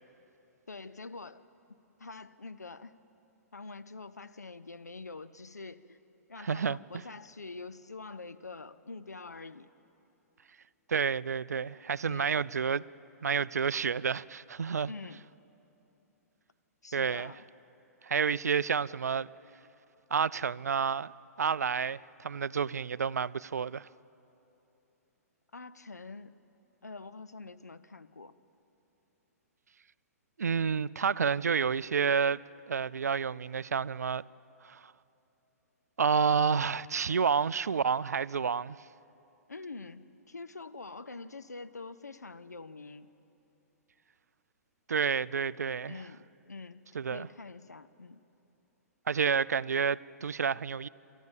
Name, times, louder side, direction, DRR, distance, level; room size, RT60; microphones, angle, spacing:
voice 1, 0.7-1.4 1.7-2.9 3.5-6.0 6.3-9.7 12.0-12.4 14.8-15.2 16.8-17.4 25.5-26.4 26.8-28.3 39.5-43.1 45.9-46.8 47.1-48.2, left 3 dB, 85° left, 0.7 m, -45 dB
voice 2, 6.4-6.8 10.9-12.8 13.2-14.9 16.9-17.3 18.0-19.3 20.1-21.1 21.4-23.9 30.4-32.4 32.7-34.2 34.6-34.8 36.0-38.8 44.9-46.0 46.9-47.3 49.1-50.9, right 6 dB, 75° right, 0.4 m, -29 dB
29.0 x 14.0 x 7.3 m
figure-of-eight pair, 120°, 9 cm